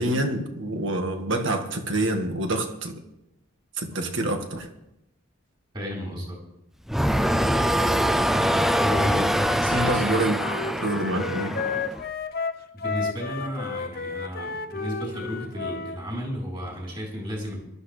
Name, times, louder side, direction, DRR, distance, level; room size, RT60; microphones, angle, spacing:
voice 1, 0.0-3.0 3.8-4.7 9.7-10.4 10.8-11.5, right 1 dB, 60° right, 1.7 m, -26 dB
voice 2, 5.7-6.4 8.8-10.3 12.7-17.6, equal, 25° right, 4.1 m, -33 dB
sound 1, 6.9-12.1, equal, ahead, 0.4 m, -24 dB
Wind instrument woodwind instrument, 9.6-16.0, left 4 dB, 45° left, 0.9 m, -32 dB
21.0 x 12.5 x 3.4 m
head